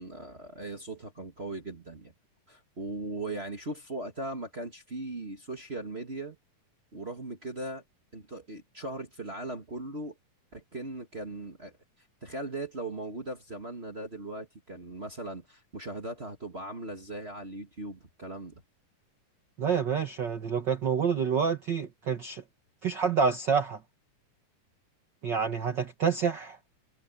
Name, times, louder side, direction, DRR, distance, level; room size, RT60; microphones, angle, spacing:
voice 1, 0.0-2.1 2.5-6.4 6.9-7.8 8.1-10.1 10.5-11.7 12.2-18.6, right 2 dB, 30° right, 1.2 m, -39 dB
voice 2, 19.6-22.4 22.8-23.8 25.2-26.6, right 6 dB, 45° right, 1.5 m, -28 dB
omnidirectional pair, 3.9 m